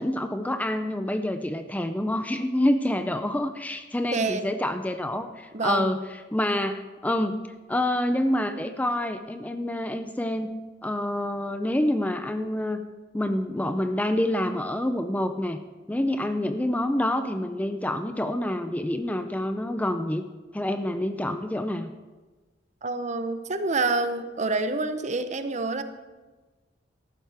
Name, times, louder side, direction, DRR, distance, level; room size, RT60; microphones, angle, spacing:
voice 1, 0.0-6.0 6.3-7.4 7.7-10.5 10.8-12.8 13.1-15.6 15.9-20.2 20.5-21.9, left 1 dB, 10° left, 8 dB, 0.4 m, -27 dB
voice 2, 4.1-4.5 5.5-5.9 22.8-25.8, right 3 dB, 40° right, 9 dB, 0.8 m, -27 dB
14.0 x 12.0 x 3.4 m, 1.2 s
head